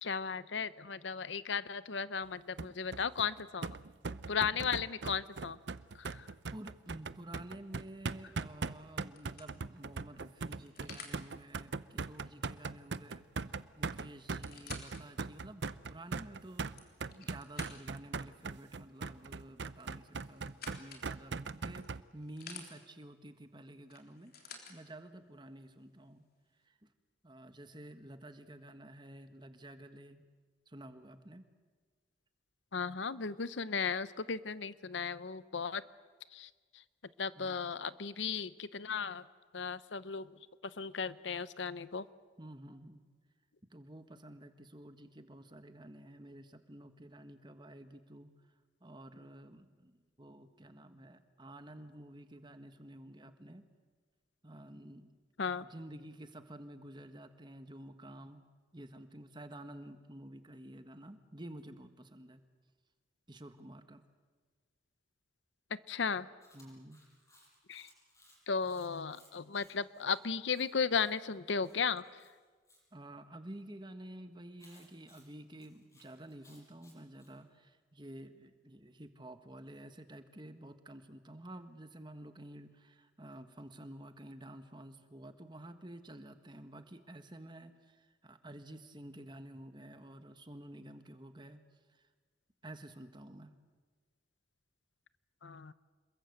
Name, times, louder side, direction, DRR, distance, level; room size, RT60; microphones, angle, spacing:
voice 1, 0.0-3.7 4.3-5.6 5.9-6.3 32.7-35.8 36.3-36.8 37.2-39.2 39.5-42.1 55.4-55.7 65.9-66.3 67.7-67.9 68.5-72.0 95.4-95.7, left 5 dB, 80° left, 16 dB, 0.8 m, -35 dB
sound 1, 2.6-22.0, right 4 dB, 70° right, 0.7 m, -40 dB
voice 2, 6.5-16.7 17.2-26.2 26.6-26.9 27.2-30.2 30.7-31.4 37.3-37.6 42.4-43.0 43.7-48.3 48.8-53.7 54.4-55.2 55.6-58.5 58.7-62.4 63.3-64.0 66.5-67.0 72.9-91.6 91.9-92.1 92.6-93.5, right 1 dB, 25° right, 9 dB, 1.5 m, -51 dB
sound 2, 8.3-8.6 9.2-11.2 13.2-13.4 13.6-13.7 14.2-15.0 15.6-15.7 16.5-18.1 19.7-21.1 21.8-22.7 23.9-24.8 25.7-25.8, left 5 dB, 55° left, 3.6 m, -51 dB
Chewing mastication, 66.4-72.8 74.6-77.3, left 1 dB, 20° left, 6.7 m, -65 dB
27.5 x 22.0 x 8.1 m, 1.4 s
head